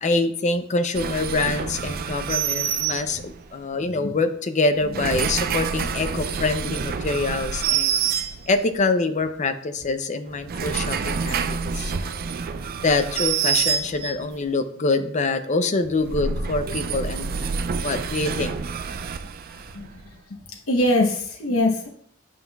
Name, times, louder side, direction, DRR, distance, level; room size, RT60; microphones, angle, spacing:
voice 1, 0.0-8.0 8.5-12.3 12.8-18.5, left 3 dB, 35° left, 9 dB, 0.5 m, -25 dB
sound 1, 0.9-3.5 4.7-8.8 10.3-14.3 15.8-20.0, right 6 dB, 45° right, 0.4 m, -27 dB
voice 2, 20.3-21.9, left 1 dB, 75° left, 0 dB, 1.0 m, -23 dB
9.2 x 5.7 x 2.3 m, 0.64 s
head